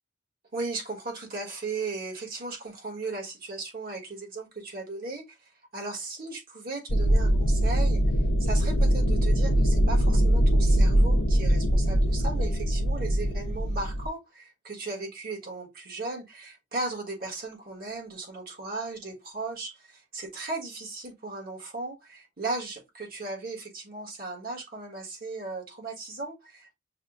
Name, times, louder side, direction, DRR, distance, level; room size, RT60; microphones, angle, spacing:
voice 1, 0.5-5.4 5.7-8.0 8.4-26.7, right 3 dB, 50° right, 1.5 m, -36 dB
sound 1, 6.9-14.1, right 1 dB, 80° left, 0.7 m, -22 dB
6.6 x 2.2 x 2.5 m
head